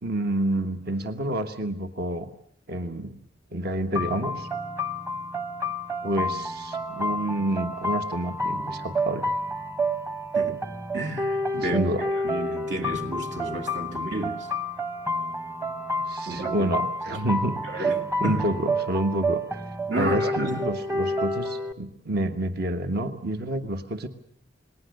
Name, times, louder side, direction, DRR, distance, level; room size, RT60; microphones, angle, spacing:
voice 1, 0.0-2.3 2.7-3.2 3.5-4.5 6.0-9.3 11.6-12.1 16.1-17.9 18.2-19.6 20.0-24.1, right 1 dB, 60° right, 1.3 m, -28 dB
sound 1, 4.0-21.7, equal, 15° right, 0.9 m, -29 dB
voice 2, 10.9-11.9 12.2-14.5 16.3-16.7 17.7-18.4 19.9-20.6, right 1 dB, 80° right, 2.5 m, -31 dB
28.5 x 20.0 x 6.6 m
head